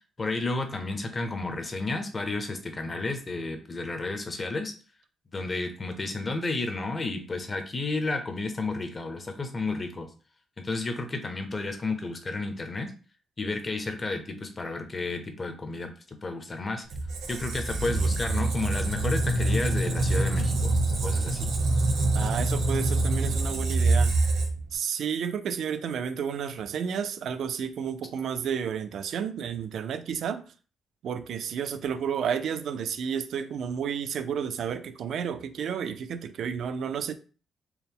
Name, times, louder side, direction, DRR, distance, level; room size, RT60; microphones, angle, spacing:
voice 1, 0.2-4.7 5.3-10.1 10.6-12.9 13.4-16.8 17.3-21.5, left 3 dB, 25° left, 0.6 m, -32 dB
Squeak, 16.9-24.7, right 2 dB, 80° right, 1.0 m, -25 dB
voice 2, 22.1-24.1 24.7-30.4 31.0-37.1, right 7 dB, 60° right, 0.4 m, -31 dB
4.5 x 2.0 x 3.5 m
cardioid pair, 160°, 0 cm